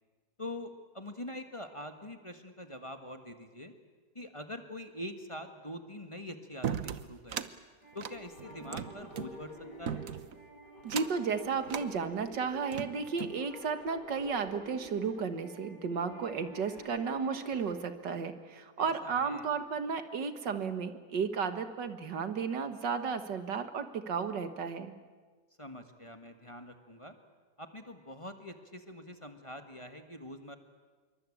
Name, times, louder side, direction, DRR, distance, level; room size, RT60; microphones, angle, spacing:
voice 1, 0.4-3.7 4.1-7.4 7.9-10.0 18.8-19.5 25.6-27.1 27.6-30.6, left 1 dB, 20° left, 6 dB, 1.5 m, -44 dB
sound 1, 6.6-7.5 7.9-9.3 9.9-10.4 10.8-11.3 11.7-11.9 12.5-13.4, right 8 dB, 55° right, 1.3 m, -37 dB
sound 2, 7.8-17.7, right 1 dB, 75° left, 8.8 m, -49 dB
voice 2, 10.8-24.9, right 5 dB, 80° right, 9 dB, 2.2 m, -33 dB
26.5 x 23.5 x 8.7 m, 1.4 s
omnidirectional pair, 1.9 m